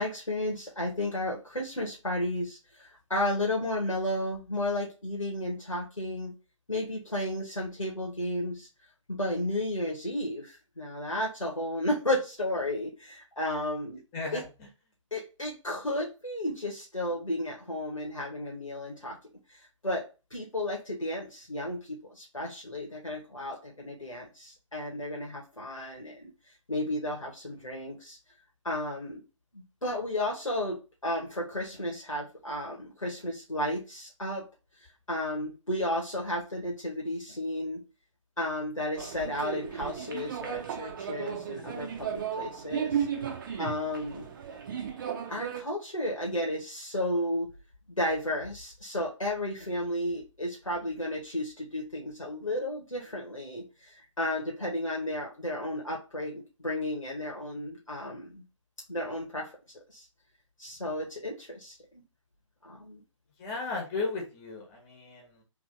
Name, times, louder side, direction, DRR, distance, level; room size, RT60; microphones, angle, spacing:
voice 1, 0.0-6.3 6.7-8.7 9.1-14.0 14.3-14.4 15.1-19.2 19.5-20.0 20.3-26.3 26.7-28.2 28.6-29.2 29.5-34.4 35.1-37.8 38.4-43.1 43.6-44.3 45.3-47.5 47.9-58.4 58.9-59.5 59.9-60.0 60.6-62.0 62.6-63.0, left 1 dB, 90° left, -2 dB, 1.5 m, -33 dB
sound 1, 39.0-45.6, right 8 dB, 40° right, 0.8 m, -35 dB
voice 2, 63.4-65.4, left 3 dB, 20° left, 1 dB, 1.3 m, -35 dB
3.5 x 2.9 x 3.9 m, 0.31 s
figure-of-eight pair, 135°, 16 cm